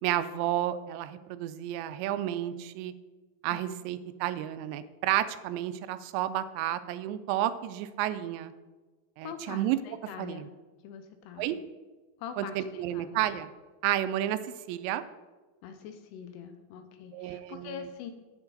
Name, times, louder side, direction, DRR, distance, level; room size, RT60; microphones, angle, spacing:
voice 1, 0.0-2.9 3.4-8.5 9.2-9.8 10.2-10.5 11.4-11.6 12.4-13.5 13.8-15.0 17.1-17.9, right 12 dB, 85° right, 12 dB, 2.8 m, -31 dB
voice 2, 9.2-10.5 10.8-11.6 12.2-13.2 15.6-18.1, left 8 dB, 80° left, 8 dB, 2.6 m, -44 dB
9.7 x 8.1 x 3.9 m, 1.3 s
omnidirectional pair, 5.0 m